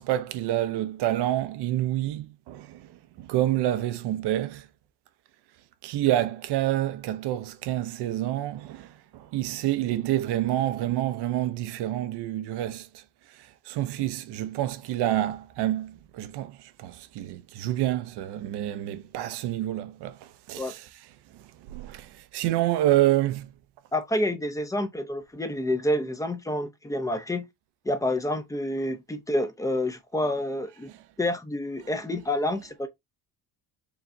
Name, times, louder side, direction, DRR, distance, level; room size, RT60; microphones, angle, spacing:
voice 1, 0.0-2.9 3.2-4.7 5.8-12.9 13.7-20.2 20.5-20.9 21.7-23.5 30.9-31.0, right 13 dB, 90° right, 0.7 m, -28 dB
voice 2, 23.9-27.5 27.9-30.9 31.2-32.9, left 1 dB, 10° left, 0.5 m, -28 dB
4.9 x 3.2 x 2.6 m
cardioid pair, 140°, 39 cm